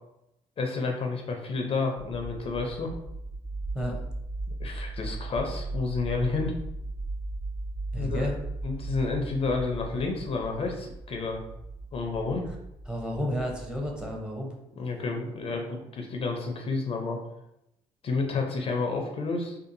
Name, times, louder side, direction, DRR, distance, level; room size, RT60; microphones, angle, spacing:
voice 1, 0.6-2.9 4.6-6.5 8.0-8.3 8.6-11.4 11.9-12.5 14.8-17.2 18.0-19.6, left 3 dB, 45° left, 2 dB, 0.5 m, -30 dB
sound 1, 2.0-14.1, right 2 dB, 45° right, 1.0 m, -37 dB
voice 2, 7.9-8.3 12.9-14.6, equal, 5° right, 0 dB, 0.7 m, -31 dB
2.6 x 2.4 x 2.5 m, 0.85 s
supercardioid pair, 65°, 13 cm